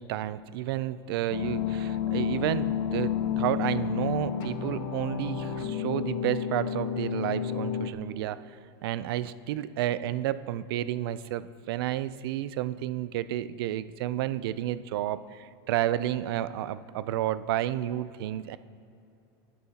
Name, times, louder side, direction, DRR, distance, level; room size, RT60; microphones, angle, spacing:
voice 1, 0.0-8.4 8.8-18.6, right 13 dB, 65° right, 15 dB, 0.5 m, -31 dB
sound 1, 1.3-7.9, left 9 dB, 50° left, 0.8 m, -30 dB
17.0 x 10.0 x 2.9 m, 2.6 s
supercardioid pair, 165°, 13 cm